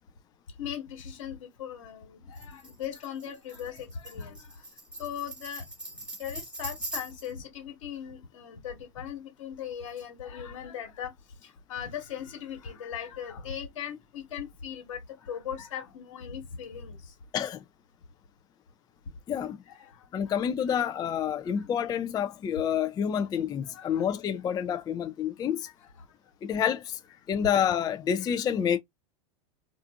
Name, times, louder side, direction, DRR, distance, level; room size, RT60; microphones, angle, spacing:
voice 1, 0.6-4.7 5.0-5.7 6.2-11.1 11.4-17.1 19.7-20.3 20.7-20.8 21.6-21.7 22.8-22.9 23.7-24.1 25.6-26.1, left 8 dB, 75° left, 1.3 m, -39 dB
Tambourine, 2.3-7.4, right 1 dB, 5° right, 1.3 m, -41 dB
voice 2, 17.3-17.6 19.3-19.6 20.1-25.7 26.4-27.0 27.3-28.8, left 8 dB, 25° left, 0.3 m, -28 dB
2.5 x 2.4 x 2.3 m
hypercardioid pair, 90°, 16 cm